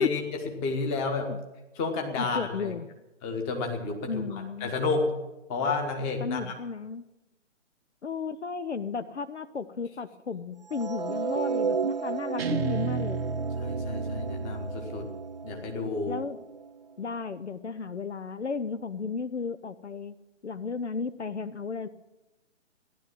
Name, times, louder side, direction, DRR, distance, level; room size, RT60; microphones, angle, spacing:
voice 1, 0.0-1.3 1.7-2.7 3.2-5.1 5.5-6.6 13.6-15.1 15.4-16.2, left 3 dB, 15° left, 3 dB, 1.4 m, -31 dB
voice 2, 2.2-2.9 4.1-4.7 6.2-7.0 8.0-13.2 16.1-16.4 17.0-20.1 20.4-21.9, left 5 dB, 65° left, 13 dB, 0.8 m, -33 dB
sound 1, 10.7-16.9, right 5 dB, 35° right, 0.4 m, -34 dB
Guitar, 12.4-15.6, right 5 dB, 55° right, 0.8 m, -33 dB
15.5 x 11.0 x 7.3 m, 1.0 s
figure-of-eight pair, 140°, 37 cm